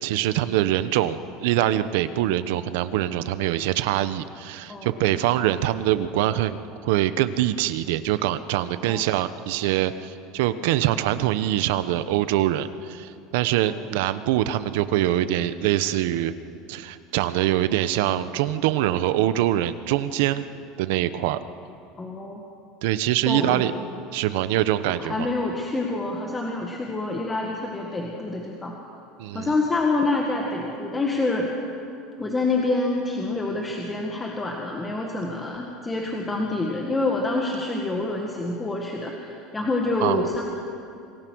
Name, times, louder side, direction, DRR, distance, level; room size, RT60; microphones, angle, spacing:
voice 1, 0.0-6.6 6.8-16.3 16.7-20.4 20.8-21.4 22.8-23.7 24.1-25.3 29.2-29.5 40.0-40.3, right 13 dB, 75° right, 12 dB, 1.0 m, -24 dB
voice 2, 22.0-22.4 23.3-23.8 25.0-28.7 29.3-31.5 32.2-40.4, left 2 dB, 10° left, 0 dB, 1.6 m, -27 dB
27.0 x 19.5 x 6.3 m, 2.5 s
cardioid pair, 170°, 0 cm